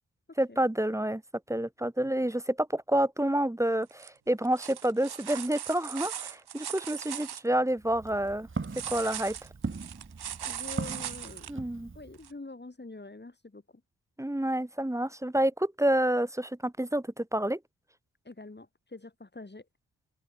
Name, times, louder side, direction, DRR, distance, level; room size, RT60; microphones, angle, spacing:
voice 1, 0.4-1.2 1.5-8.5 8.9-9.4 11.5-11.9 14.2-17.6, right 1 dB, 10° right, 1.2 m, -28 dB
sound 1, 3.9-4.1 4.4-7.4 8.6-11.5 12.2-12.3, right 9 dB, 75° right, 1.9 m, -39 dB
Walk footsteps, 7.7-12.3, right 4 dB, 30° right, 2.1 m, -39 dB
voice 2, 10.4-11.5 11.9-13.6 18.2-19.7, left 2 dB, 25° left, 6.7 m, -45 dB
open air
cardioid pair, 55°, 39 cm